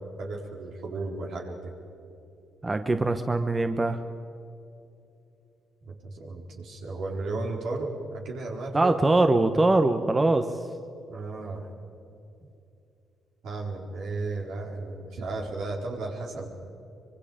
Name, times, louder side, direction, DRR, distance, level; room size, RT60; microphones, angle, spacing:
voice 1, 0.0-1.7 5.8-8.9 11.1-11.7 13.4-16.5, right 3 dB, 75° right, -1 dB, 4.3 m, -34 dB
voice 2, 2.6-4.0 8.7-10.4, right 2 dB, 20° right, 8 dB, 1.0 m, -22 dB
25.0 x 23.5 x 5.2 m, 2.7 s
cardioid pair, 90°, 0 cm